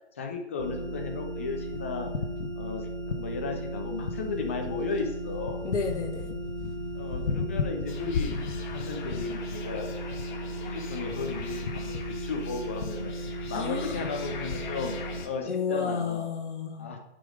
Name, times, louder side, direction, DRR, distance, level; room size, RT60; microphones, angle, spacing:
voice 1, 0.2-2.1 2.6-5.7 6.9-8.3 8.7-10.0 10.3-13.1 13.5-14.9 15.2-16.3 16.8-17.0, left 4 dB, 10° left, 3 dB, 0.4 m, -35 dB
sound 1, 0.6-15.2, right 1 dB, 55° right, 3.0 m, -36 dB
sound 2, 1.5-3.7 4.0-14.7, left 6 dB, 70° left, 1.0 m, -37 dB
voice 2, 5.6-6.4 13.5-14.1 15.5-16.9, left 5 dB, 85° left, 2 dB, 1.2 m, -31 dB
sound 3, 7.9-15.3, left 5 dB, 40° left, 1.6 m, -44 dB
10.0 x 5.1 x 5.0 m, 0.96 s
hypercardioid pair, 150°, 35 cm